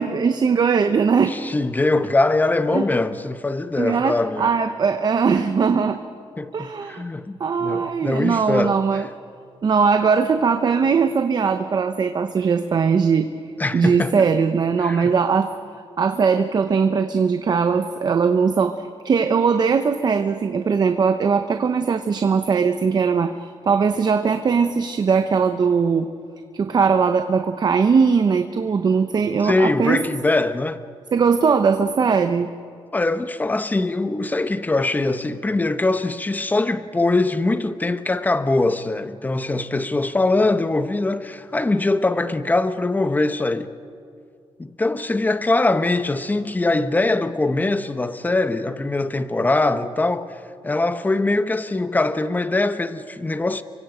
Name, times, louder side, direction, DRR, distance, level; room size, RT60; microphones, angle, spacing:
voice 1, 0.0-1.3 2.7-2.9 3.8-6.0 6.5-7.0 7.4-9.1 9.6-13.3 13.7-15.5 16.0-26.1 26.5-30.0 31.1-32.5, right 5 dB, 45° right, 1.0 m, -20 dB
voice 2, 1.3-4.5 6.4-9.1 13.6-14.3 14.8-15.1 29.4-30.8 32.9-43.7 44.6-53.6, left 2 dB, 20° left, 1.1 m, -22 dB
30.0 x 24.5 x 5.1 m
cardioid pair, 95°, 10 cm